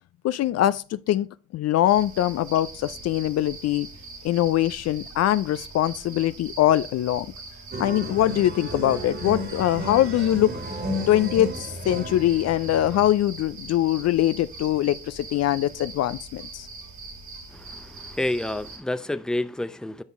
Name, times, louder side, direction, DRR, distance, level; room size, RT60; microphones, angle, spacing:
voice 1, 0.2-1.3 1.5-3.9 4.2-7.3 7.8-10.5 11.1-16.7, left 13 dB, 55° left, 0.4 m, -22 dB
sound 1, 1.9-18.8, right 3 dB, 70° right, 2.5 m, -42 dB
sound 2, 7.7-13.1, equal, 35° right, 1.8 m, -33 dB
voice 2, 17.5-20.0, left 1 dB, ahead, 0.5 m, -29 dB
8.1 x 5.3 x 3.5 m
supercardioid pair, 55°, 31 cm